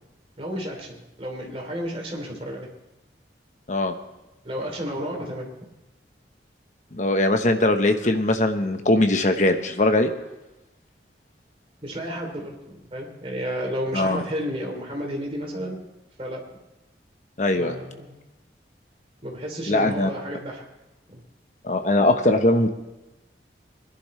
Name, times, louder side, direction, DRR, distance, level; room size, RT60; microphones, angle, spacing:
voice 1, 0.4-2.7 4.4-5.5 11.8-15.8 16.2-16.4 17.6-18.1 19.2-20.7 21.1-21.2, equal, 35° right, 0 dB, 3.0 m, -32 dB
voice 2, 6.9-10.1 13.9-14.2 17.4-17.7 19.7-20.1 21.6-22.7, left 2 dB, 45° left, 7 dB, 1.1 m, -21 dB
21.5 x 11.0 x 3.2 m, 1.0 s
head